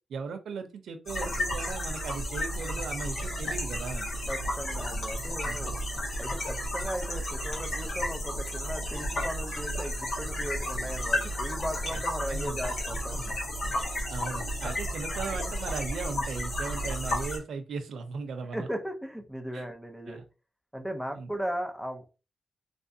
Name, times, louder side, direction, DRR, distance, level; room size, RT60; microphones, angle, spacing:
voice 1, 0.1-4.1 5.4-5.8 11.9-12.0 12.3-12.7 14.1-18.7 19.5-19.7 20.1-20.2 21.1-21.3, right 5 dB, 90° right, 7 dB, 0.6 m, -37 dB
sound 1, 1.1-17.4, equal, 70° left, 1.6 m, -32 dB
voice 2, 4.3-5.7 6.2-13.2 18.5-20.2 20.7-22.2, equal, ahead, 5 dB, 0.6 m, -37 dB
3.4 x 3.2 x 2.7 m, 0.32 s
wide cardioid pair, 125°, 0 cm